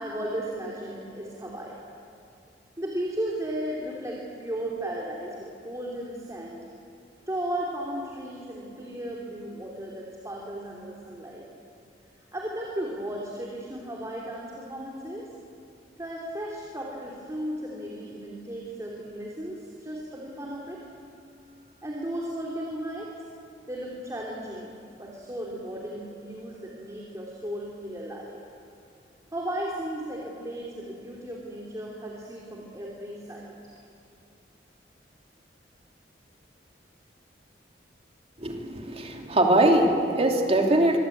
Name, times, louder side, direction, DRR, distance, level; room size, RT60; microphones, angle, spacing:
voice 1, 0.0-1.8 2.8-6.6 7.3-11.5 12.3-15.3 16.0-20.8 21.8-23.1 23.7-28.4 29.3-33.5, right 1 dB, 20° right, -3 dB, 3.0 m, -35 dB
voice 2, 38.4-41.0, right 1 dB, 35° right, 2 dB, 2.8 m, -22 dB
25.0 x 23.0 x 8.6 m, 2.6 s
head